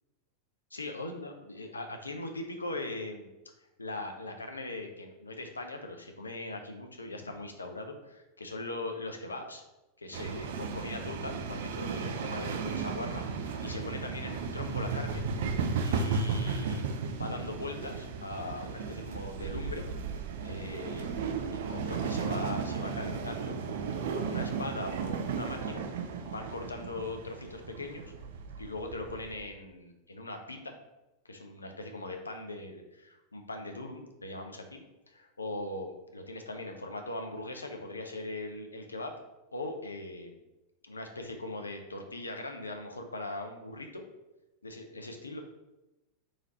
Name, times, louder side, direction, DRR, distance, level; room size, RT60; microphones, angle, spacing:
voice 1, 0.7-3.3 3.8-9.6 10.0-15.3 15.8-19.8 20.4-21.1 21.5-23.6 24.1-25.8 26.3-28.1 28.6-30.7 31.3-39.1 39.5-40.4 40.8-44.0 44.6-45.4, left 2 dB, 80° left, 4 dB, 0.6 m, -40 dB
sound 1, 10.1-29.4, right 5 dB, 55° right, 0.5 m, -35 dB
3.8 x 3.2 x 4.1 m, 0.99 s
figure-of-eight pair, 90°, 0 cm